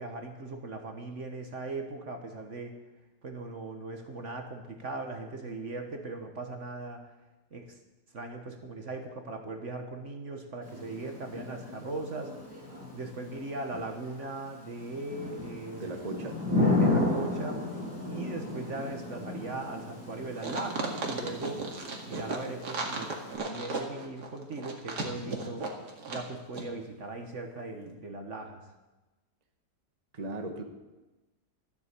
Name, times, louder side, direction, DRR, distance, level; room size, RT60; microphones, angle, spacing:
voice 1, 0.0-2.8 3.2-7.0 7.5-7.8 8.1-12.3 12.9-16.3 16.8-17.7 18.1-21.6 22.1-25.7 26.1-28.6, right 2 dB, 50° right, 5 dB, 1.6 m, -39 dB
Thunder / Rain, 10.6-23.4, left 2 dB, 5° right, 6.3 m, -34 dB
voice 2, 15.8-16.5 30.1-30.6, right 2 dB, 25° right, 4 dB, 1.3 m, -37 dB
sound 1, 20.4-26.3 26.5-26.6, right 3 dB, 85° right, 2.6 m, -35 dB
13.5 x 9.0 x 8.2 m, 1.1 s
omnidirectional pair, 1.7 m